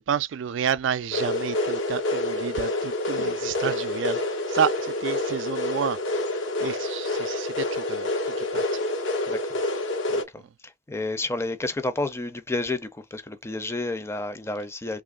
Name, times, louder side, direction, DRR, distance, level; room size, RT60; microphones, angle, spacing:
voice 1, 0.1-4.2 4.5-6.0 6.6-8.1 8.4-8.6, right 8 dB, 75° right, 0.4 m, -29 dB
sound 1, 1.1-10.2, left 2 dB, 85° left, 1.1 m, -27 dB
voice 2, 10.1-15.0, left 2 dB, 15° left, 0.5 m, -31 dB
3.2 x 2.5 x 3.6 m
head